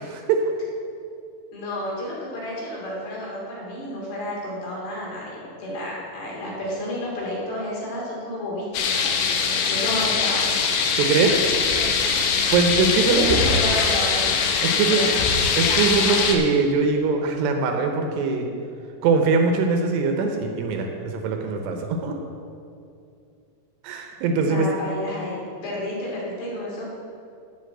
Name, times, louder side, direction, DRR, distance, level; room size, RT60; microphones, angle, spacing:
voice 1, 1.5-9.0 9.7-10.4 13.0-14.3 14.8-15.2 24.4-26.8, left 1 dB, 70° left, -4 dB, 4.4 m, -31 dB
sound 1, 8.7-16.4, left 5 dB, 85° left, 3.3 m, -22 dB
voice 2, 11.0-11.4 12.5-13.4 14.6-15.1 15.5-18.5 19.0-22.2 23.8-24.8, right 4 dB, 75° right, 4 dB, 2.8 m, -22 dB
8.8 x 7.7 x 7.8 m, 2.5 s
omnidirectional pair, 5.2 m